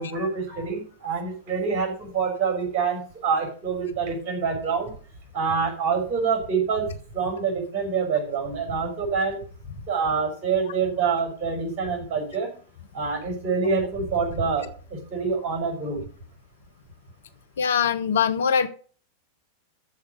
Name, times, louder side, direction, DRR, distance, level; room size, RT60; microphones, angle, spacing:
voice 1, 0.0-4.9 5.3-9.4 9.9-12.5 12.9-16.0, right 5 dB, 35° right, 4 dB, 6.0 m, -26 dB
voice 2, 17.6-18.7, left 7 dB, 65° left, 9 dB, 0.9 m, -22 dB
14.0 x 5.0 x 6.7 m, 0.41 s
figure-of-eight pair, 90°, 0 cm